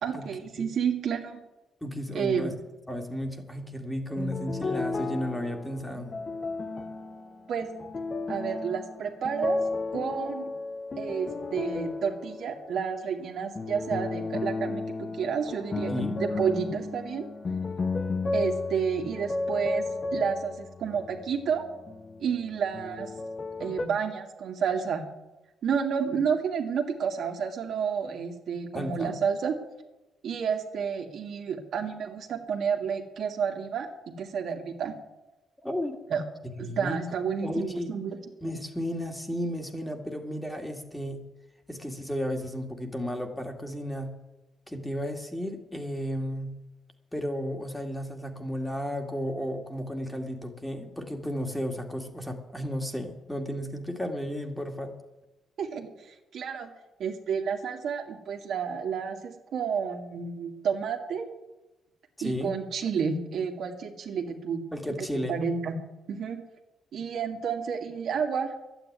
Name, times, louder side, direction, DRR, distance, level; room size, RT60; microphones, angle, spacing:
voice 1, 0.0-1.4 2.1-2.5 7.5-7.7 8.3-9.6 9.9-10.5 11.0-15.9 16.2-17.3 18.3-21.6 22.2-23.1 23.6-25.0 25.6-29.6 30.2-33.9 34.2-34.9 36.1-36.2 36.6-38.2 55.6-55.9 56.3-56.7 57.0-61.3 62.2-64.6 65.3-65.7 66.1-66.4 66.9-68.5, right 6 dB, 65° right, 3 dB, 2.1 m, -30 dB
voice 2, 1.8-2.5 2.9-6.1 15.9-16.2 28.7-29.2 35.6-36.0 36.6-37.0 37.4-37.9 38.4-41.2 41.7-44.1 44.7-46.6 47.1-54.9 62.2-62.5 64.7-65.4, equal, 5° left, 4 dB, 2.2 m, -33 dB
sound 1, 4.1-13.0 13.5-22.5 22.7-23.9, left 3 dB, 35° left, 1.3 m, -33 dB
11.5 x 9.1 x 9.4 m, 1.0 s
cardioid pair, 90°, 0 cm